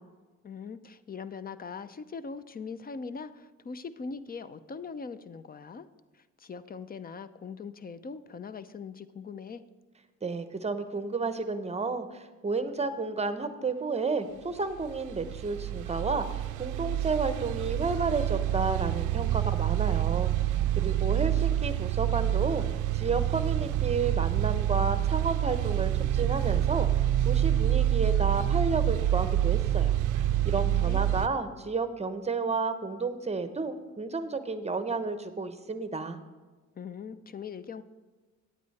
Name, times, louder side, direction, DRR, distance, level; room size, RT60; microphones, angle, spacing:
voice 1, 0.4-5.9 6.1-9.6 30.6-31.0 36.8-37.8, left 5 dB, 30° left, 14 dB, 0.6 m, -41 dB
voice 2, 10.2-22.6 22.9-29.9 30.4-36.2, right 4 dB, 20° right, 10 dB, 0.8 m, -31 dB
sound 1, 14.8-31.3, right 12 dB, 80° right, 0.5 m, -27 dB
10.0 x 8.4 x 4.1 m, 1.3 s
cardioid pair, 90°, 30 cm